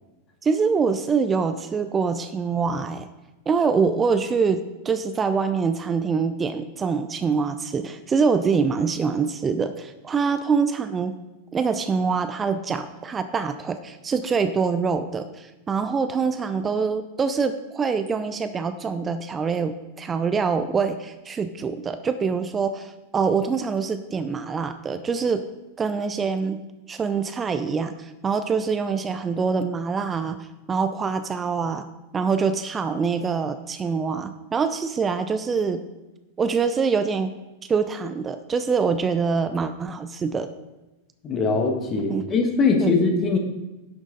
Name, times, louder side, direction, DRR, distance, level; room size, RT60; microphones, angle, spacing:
voice 1, 0.4-3.1 3.5-11.1 11.5-25.4 25.8-26.6 26.9-31.8 32.1-35.8 36.4-37.3 37.7-40.5 42.1-42.2 42.8-42.9, right 5 dB, 20° right, 9 dB, 0.5 m, -24 dB
voice 2, 41.2-43.4, left 4 dB, 25° left, 3 dB, 1.6 m, -21 dB
11.5 x 6.3 x 3.9 m, 1.1 s
figure-of-eight pair, 90°, 0 cm